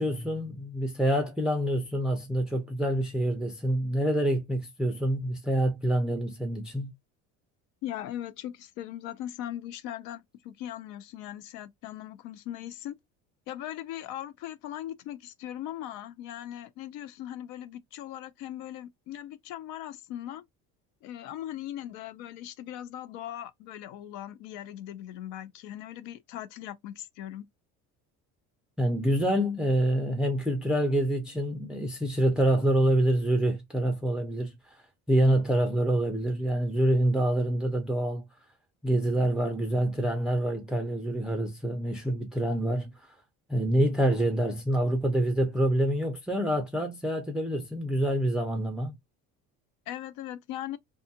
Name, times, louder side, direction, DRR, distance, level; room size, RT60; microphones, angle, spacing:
voice 1, 0.0-6.9 28.8-34.8 35.1-38.3 38.8-42.9 43.5-49.0, right 1 dB, 5° right, 0.4 m, -26 dB
voice 2, 7.8-13.0 13.5-20.4 21.0-27.5 49.9-50.8, left 12 dB, 70° left, 0.5 m, -39 dB
2.6 x 2.3 x 2.6 m
cardioid pair, 135°, 31 cm